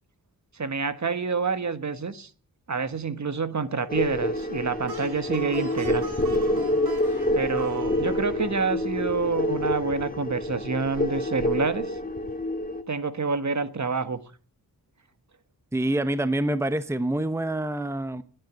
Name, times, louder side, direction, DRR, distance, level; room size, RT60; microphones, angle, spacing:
voice 1, 0.5-2.3 2.7-6.1 7.3-12.0 12.9-14.2, right 4 dB, 50° right, 1.3 m, -28 dB
sound 1, 3.9-12.8, left 1 dB, 25° left, 2.0 m, -27 dB
Plucked string instrument, 4.3-9.6, right 5 dB, 80° right, 3.1 m, -41 dB
voice 2, 15.7-18.2, right 1 dB, 5° right, 0.9 m, -26 dB
18.5 x 9.3 x 8.1 m
wide cardioid pair, 80°, 37 cm